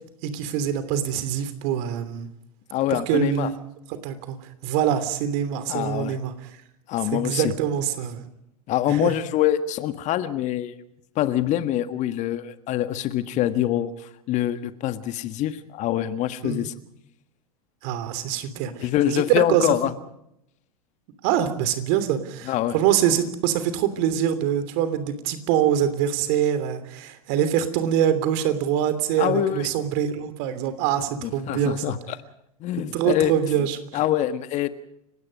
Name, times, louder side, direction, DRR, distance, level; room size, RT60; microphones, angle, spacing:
voice 1, 0.2-2.3 2.9-3.5 3.9-4.4 4.6-6.3 7.1-8.2 8.9-9.1 16.4-16.7 17.8-19.7 21.2-32.0 32.8-33.8, right 9 dB, 50° right, 12 dB, 3.1 m, -24 dB
voice 2, 2.7-3.5 5.7-6.2 6.9-7.5 8.7-10.7 11.1-16.7 18.8-19.9 22.5-22.8 29.2-29.7 31.2-32.2 32.6-33.3 33.6-33.7 33.9-34.7, left 12 dB, 40° left, 11 dB, 1.5 m, -25 dB
30.0 x 17.0 x 5.4 m, 0.80 s
hypercardioid pair, 95°, 19 cm